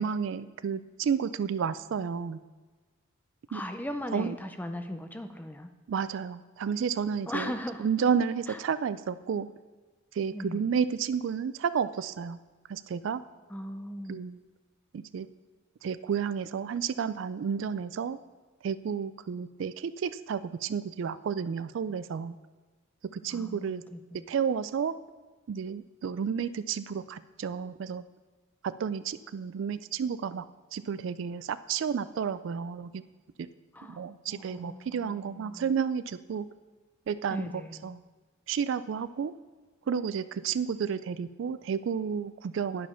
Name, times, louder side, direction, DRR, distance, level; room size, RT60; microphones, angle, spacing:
voice 1, 0.0-2.4 3.5-3.6 4.1-4.4 5.9-7.5 7.8-9.5 10.2-12.4 12.7-13.2 14.1-14.4 14.9-15.3 15.8-18.2 18.6-22.4 23.1-23.8 24.3-24.9 25.5-28.0 28.6-30.5 30.7-33.0 33.4-33.5 33.8-36.5 37.1-38.0 38.5-39.3 39.9-42.9, right 7 dB, 65° right, 14 dB, 0.3 m, -31 dB
voice 2, 3.5-5.7 7.3-7.9 8.5-8.6 10.3-10.7 13.5-14.2 23.3-24.3 33.7-34.0 34.3-35.7 37.3-37.9, left 1 dB, 10° left, 7 dB, 0.5 m, -38 dB
11.0 x 5.0 x 5.6 m, 1.3 s
head